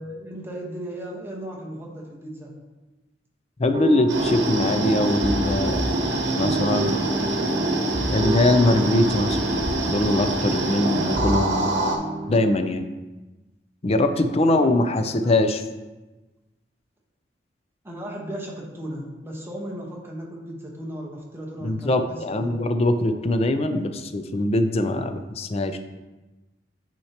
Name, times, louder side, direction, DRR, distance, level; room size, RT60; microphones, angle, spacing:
voice 1, 0.0-2.5 14.0-15.4 17.8-22.6 23.7-23.8, equal, 15° right, -3 dB, 1.2 m, -36 dB
voice 2, 3.6-6.0 6.4-7.0 8.1-9.4 9.8-11.7 12.3-12.9 13.8-15.6 21.6-25.8, left 1 dB, 35° left, 8 dB, 0.5 m, -22 dB
sound 1, 3.7-12.7, right 2 dB, 30° right, 0.3 m, -30 dB
sound 2, 4.1-12.0, right 1 dB, 85° right, 1.0 m, -25 dB
8.5 x 4.5 x 2.9 m, 1.1 s
head